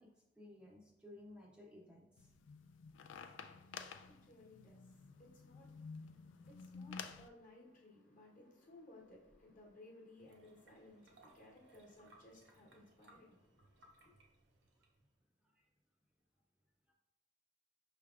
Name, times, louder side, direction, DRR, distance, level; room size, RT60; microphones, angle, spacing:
voice 1, 0.0-2.3 15.4-15.6 16.9-17.0, left 1 dB, 5° right, 0.4 m, -57 dB
sound 1, 2.2-7.3, left 5 dB, 80° left, 0.3 m, -52 dB
voice 2, 3.5-14.1, left 2 dB, 45° left, 1.0 m, -61 dB
sound 2, 10.2-15.2, right 2 dB, 70° right, 0.6 m, -67 dB
5.5 x 3.3 x 2.4 m
head